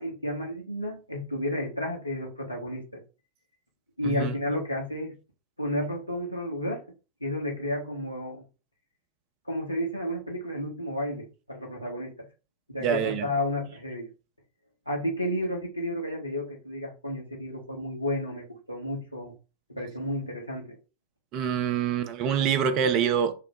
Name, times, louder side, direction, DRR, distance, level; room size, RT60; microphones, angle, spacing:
voice 1, 0.0-3.0 4.0-5.1 5.6-6.8 7.2-8.4 9.5-12.3 12.7-14.1 14.9-19.3 19.7-20.8, left 1 dB, 85° left, 0.9 m, -32 dB
voice 2, 4.0-4.3 12.8-13.3 21.3-23.3, right 8 dB, 40° right, 0.5 m, -25 dB
4.9 x 2.0 x 3.0 m
figure-of-eight pair, 90°, 0 cm